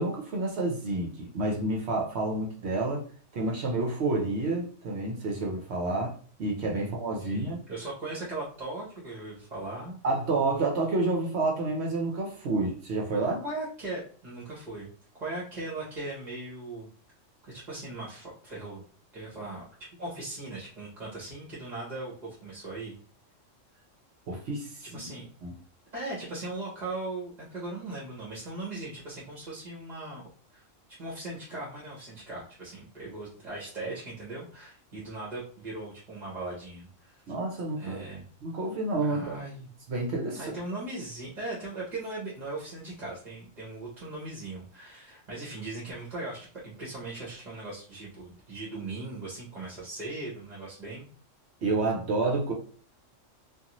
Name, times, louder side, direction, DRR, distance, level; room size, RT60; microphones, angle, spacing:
voice 1, 0.0-3.0 3.3-6.1 6.4-7.6 10.0-13.4 24.3-25.0 25.4-25.5 37.3-38.0 38.4-39.4 39.9-40.5 51.6-52.5, right 2 dB, 65° right, 0 dB, 0.9 m, -29 dB
voice 2, 7.2-10.0 13.4-14.9 15.1-16.9 17.4-18.8 19.1-19.6 20.0-23.0 24.8-25.3 25.9-30.2 30.5-30.6 31.0-37.2 37.8-38.2 39.0-39.7 40.3-51.1, right 2 dB, 40° right, -5 dB, 0.9 m, -39 dB
2.5 x 2.5 x 2.9 m, 0.42 s
omnidirectional pair, 1.3 m